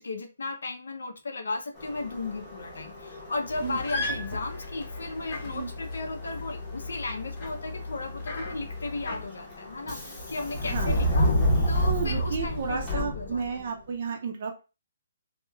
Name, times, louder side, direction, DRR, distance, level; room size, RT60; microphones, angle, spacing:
voice 1, 0.0-13.6, left 3 dB, 85° left, 6 dB, 0.5 m, -35 dB
Subway metro underground, 1.8-13.7, equal, 10° left, 0.8 m, -31 dB
sound 1, 3.5-9.3, left 2 dB, 35° left, 1.4 m, -37 dB
voice 2, 10.6-11.0 11.8-14.6, right 6 dB, 45° right, 2 dB, 0.4 m, -32 dB
3.0 x 2.1 x 2.2 m, 0.31 s
hypercardioid pair, 165°, 0 cm